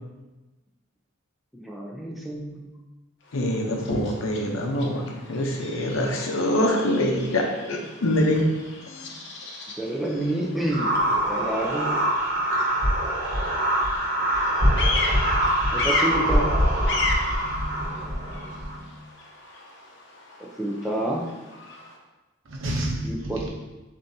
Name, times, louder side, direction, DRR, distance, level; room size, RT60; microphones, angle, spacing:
voice 1, 1.5-2.7 9.8-12.0 15.6-16.5 20.6-21.3 23.0-23.5, right 1 dB, ahead, -3 dB, 0.4 m, -29 dB
Bird vocalization bird call bird song, 3.2-22.0, left 3 dB, 60° left, 0.8 m, -36 dB
voice 2, 3.3-8.4 8.8-9.2, left 1 dB, 85° left, 1 dB, 0.7 m, -25 dB
sound 1, 10.7-18.8, right 1 dB, 45° right, 0.9 m, -24 dB
voice 3, 17.4-18.9 22.5-23.5, right 1 dB, 70° right, -2 dB, 0.7 m, -33 dB
7.1 x 2.7 x 2.7 m, 1.1 s
head